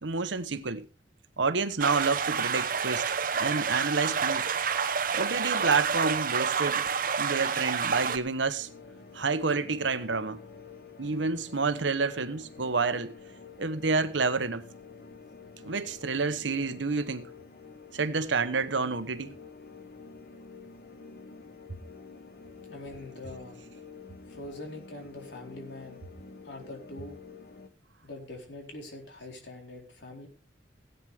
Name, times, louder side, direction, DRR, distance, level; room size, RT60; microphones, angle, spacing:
voice 1, 0.0-0.8 1.4-3.1 3.4-4.5 5.1-6.9 7.2-8.7 9.1-10.4 11.0-13.1 13.6-14.6 15.6-17.3 17.9-19.4, right 4 dB, 90° right, 1.1 m, -29 dB
sound 1, 1.8-8.2, right 6 dB, 50° right, 0.9 m, -29 dB
sound 2, 8.6-27.7, left 5 dB, 55° left, 1.4 m, -49 dB
voice 2, 22.7-23.6 24.3-26.0 26.3-27.2 28.0-30.3, left 2 dB, 70° left, 4.3 m, -43 dB
17.0 x 9.3 x 3.5 m
head